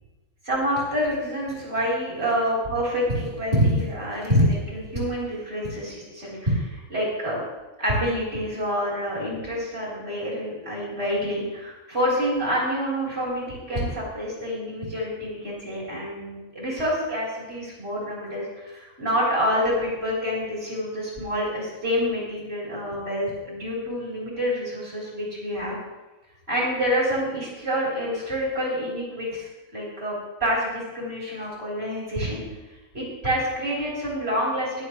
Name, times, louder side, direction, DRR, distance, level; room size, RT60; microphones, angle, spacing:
voice 1, 0.5-7.4 7.8-25.8 26.5-32.4 32.9-34.8, equal, 45° right, -6 dB, 4.8 m, -27 dB
21.5 x 7.6 x 3.4 m, 1.1 s
omnidirectional pair, 1.5 m